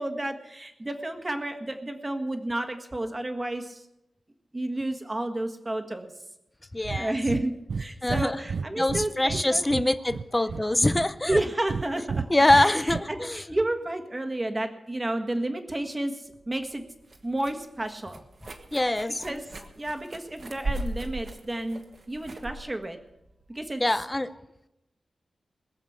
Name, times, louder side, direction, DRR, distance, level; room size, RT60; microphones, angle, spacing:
voice 1, 0.0-3.8 4.5-6.1 7.0-9.6 11.3-12.2 12.5-16.8 17.2-18.2 19.2-19.4 19.8-21.8 22.1-23.0 23.5-23.8, right 1 dB, 20° right, 5 dB, 1.5 m, -31 dB
voice 2, 6.7-7.2 8.0-8.4 8.8-11.4 12.3-13.4 18.7-19.4 23.8-24.4, left 1 dB, 15° left, 12 dB, 0.6 m, -24 dB
Breathing, 6.8-7.0 7.3-7.4 7.7-9.4 9.7-10.6 10.9-11.8 12.1-13.0, right 5 dB, 70° right, 0.4 m, -31 dB
sound 1, 16.3-24.1, right 2 dB, 50° right, 1.5 m, -39 dB
21.0 x 7.2 x 7.2 m, 0.88 s
wide cardioid pair, 145°, 0 cm